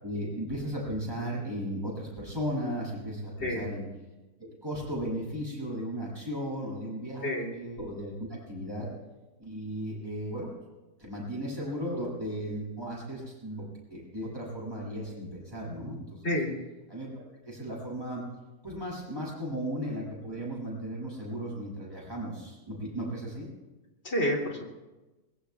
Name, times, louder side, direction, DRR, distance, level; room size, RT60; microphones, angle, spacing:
voice 1, 0.0-3.9 4.4-8.9 9.4-10.5 11.0-13.6 13.9-16.3 16.9-18.2 18.6-23.5, equal, 15° right, -5 dB, 7.8 m, -36 dB
voice 2, 3.4-3.7 7.2-7.5 16.2-16.5 24.0-24.7, equal, 45° left, -1 dB, 3.5 m, -29 dB
24.5 x 22.5 x 2.4 m, 1.1 s
omnidirectional pair, 1.6 m